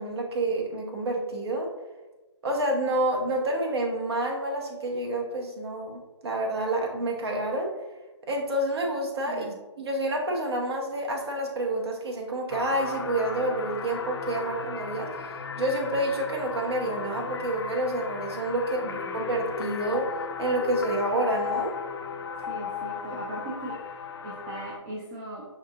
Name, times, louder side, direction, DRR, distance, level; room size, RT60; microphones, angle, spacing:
voice 1, 0.0-1.7 2.4-7.7 8.3-9.5 9.8-15.3 15.6-20.1 20.4-21.7, right 1 dB, 55° right, 0 dB, 0.9 m, -28 dB
voice 2, 9.3-9.6 18.8-19.2 22.5-23.7 24.2-25.4, right 1 dB, 25° right, -3 dB, 0.6 m, -39 dB
sound 1, 12.5-24.8, left 5 dB, 60° left, 0.4 m, -35 dB
5.8 x 2.8 x 2.4 m, 1.1 s
figure-of-eight pair, 145°, 15 cm